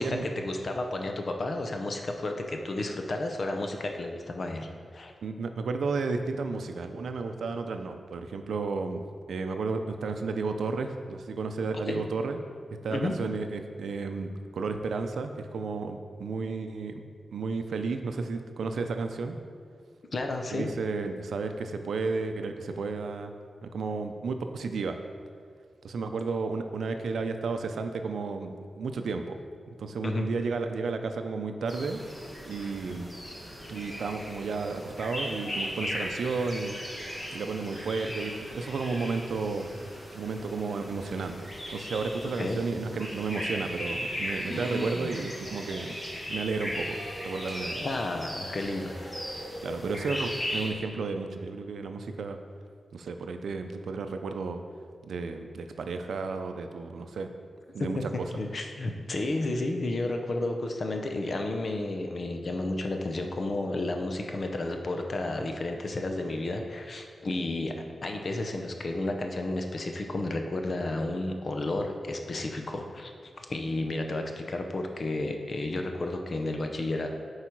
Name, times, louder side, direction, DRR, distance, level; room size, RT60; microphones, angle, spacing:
voice 1, 0.0-5.1 11.9-12.0 12.9-13.1 20.1-20.7 30.0-30.3 42.4-42.6 47.8-48.9 57.8-58.0 58.4-77.1, left 2 dB, 40° left, 4 dB, 0.6 m, -32 dB
voice 2, 5.2-12.4 12.8-17.0 17.3-19.4 20.5-23.3 23.6-25.0 25.8-29.4 29.8-32.0 32.5-33.1 33.7-36.8 37.3-39.7 40.1-46.0 46.3-47.0 47.2-47.8 49.6-52.4 52.9-54.6 55.0-57.3 57.7-58.3, right 4 dB, 80° right, 6 dB, 0.5 m, -32 dB
sound 1, 31.7-50.7, equal, 15° left, 1.5 m, -37 dB
8.3 x 4.8 x 4.6 m, 2.2 s
wide cardioid pair, 175°, 0 cm